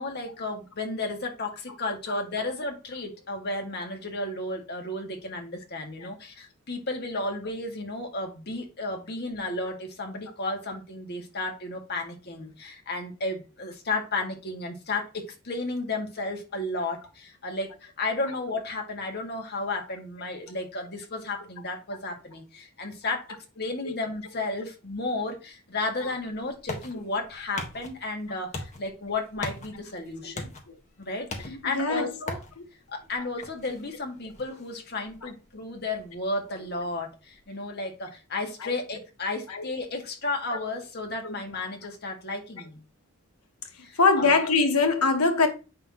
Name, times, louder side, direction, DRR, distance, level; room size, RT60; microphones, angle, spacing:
voice 1, 0.0-30.5 31.0-32.4 32.9-42.8 43.8-44.3, left 2 dB, 50° left, 2.0 m, -33 dB
sound 1, 25.9-37.4, left 2 dB, 35° left, 1.5 m, -43 dB
voice 2, 31.5-32.1 38.6-38.7 39.5-39.7 41.2-41.3 44.0-45.5, left 4 dB, 85° left, 1.5 m, -22 dB
8.8 x 5.7 x 3.0 m
head